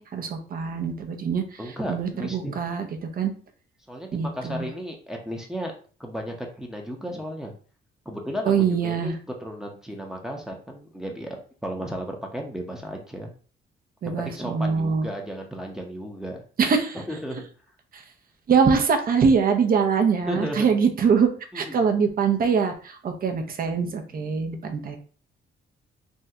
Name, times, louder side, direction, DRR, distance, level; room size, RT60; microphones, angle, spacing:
voice 1, 0.0-1.6 1.9-2.9 3.1-3.3 4.1-4.7 8.5-9.2 14.0-15.1 16.6-17.0 17.9-18.0 18.5-25.0, right 6 dB, 45° right, 5 dB, 0.6 m, -23 dB
voice 2, 1.6-2.6 3.9-5.7 6.0-7.5 8.1-9.1 9.4-13.3 14.2-16.4 17.1-17.4 20.3-20.7 21.5-21.8, equal, 5° right, 1 dB, 0.7 m, -34 dB
3.5 x 2.2 x 2.7 m, 0.41 s
cardioid pair, 90°, 20 cm